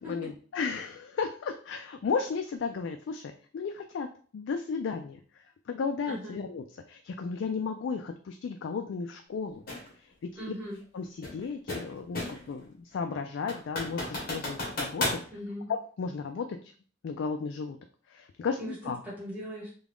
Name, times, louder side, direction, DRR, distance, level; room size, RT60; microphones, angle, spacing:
voice 1, 0.0-4.1 4.3-5.2 5.7-9.6 10.2-10.3 10.9-15.2 15.7-16.6 17.0-17.8 18.1-19.0, left 5 dB, 70° left, 6 dB, 0.3 m, -34 dB
sound 1, 9.7-9.9 11.2-12.5 12.9-13.0 13.5-15.2, left 2 dB, 50° left, 1.3 m, -33 dB
voice 2, 10.3-10.8 15.3-15.7 18.6-18.7 19.0-19.7, equal, 10° right, -6 dB, 1.4 m, -38 dB
3.7 x 2.3 x 3.4 m, 0.44 s
head